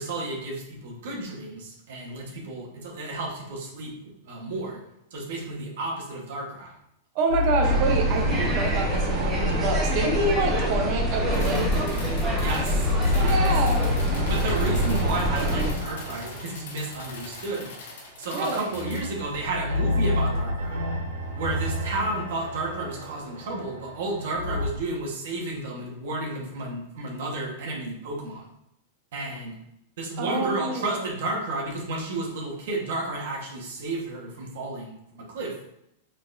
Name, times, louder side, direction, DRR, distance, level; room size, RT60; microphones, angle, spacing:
voice 1, 0.0-3.9 4.2-4.8 5.1-6.7 12.4-13.5 14.3-17.7 18.2-20.8 21.4-28.5 29.1-29.6 30.0-35.5, right 2 dB, 70° right, -2 dB, 1.3 m, -32 dB
voice 2, 7.1-11.8 13.2-13.9 18.3-18.6 30.2-30.9, right 3 dB, 45° right, 2 dB, 0.7 m, -27 dB
sound 1, 7.3-12.2 12.6-17.9 18.7-24.7, left 1 dB, 90° right, 1.3 m, -29 dB
sound 2, 7.6-15.7, equal, 10° right, 1.3 m, -25 dB
sound 3, 11.3-19.0, left 3 dB, 75° left, 1.0 m, -42 dB
4.2 x 4.0 x 2.6 m, 0.79 s
supercardioid pair, 150°, 0 cm